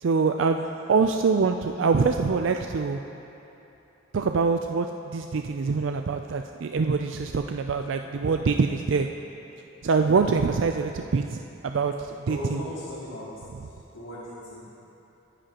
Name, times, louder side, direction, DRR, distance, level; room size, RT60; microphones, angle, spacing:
voice 1, 0.0-3.0 4.1-9.1 9.8-12.6, right 4 dB, 65° right, 5 dB, 0.4 m, -24 dB
voice 2, 12.3-14.7, left 1 dB, 90° left, -12 dB, 2.7 m, -38 dB
23.0 x 10.0 x 2.9 m, 3.0 s
head